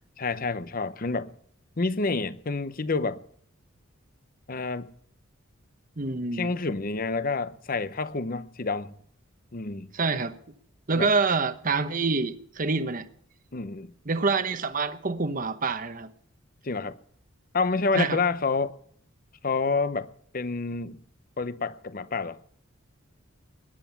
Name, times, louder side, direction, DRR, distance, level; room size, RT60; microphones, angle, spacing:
voice 1, 0.2-1.3 1.8-3.2 4.5-4.9 6.3-9.0 9.5-9.9 10.9-11.1 13.5-13.9 16.6-17.0 17.5-18.8 19.4-21.0 21.4-22.4, left 4 dB, 45° left, 0.7 m, -28 dB
voice 2, 6.0-6.6 9.9-10.3 10.9-13.1 14.1-16.1 18.0-18.2, right 4 dB, 40° right, 1.0 m, -26 dB
20.5 x 10.0 x 5.7 m
head